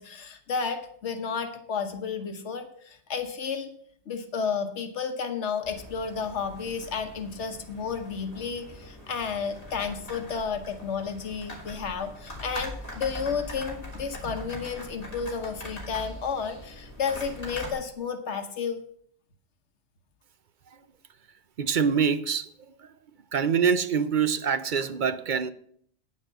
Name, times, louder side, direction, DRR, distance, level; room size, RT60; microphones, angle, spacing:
voice 1, 0.0-3.7 4.1-18.8, left 6 dB, 85° left, 7 dB, 1.3 m, -32 dB
sound 1, 5.6-17.7, left 1 dB, 35° left, 3.1 m, -42 dB
voice 2, 21.6-22.9 23.3-25.5, right 6 dB, 50° right, 11 dB, 0.7 m, -25 dB
9.2 x 7.3 x 6.6 m, 0.63 s
omnidirectional pair, 1.1 m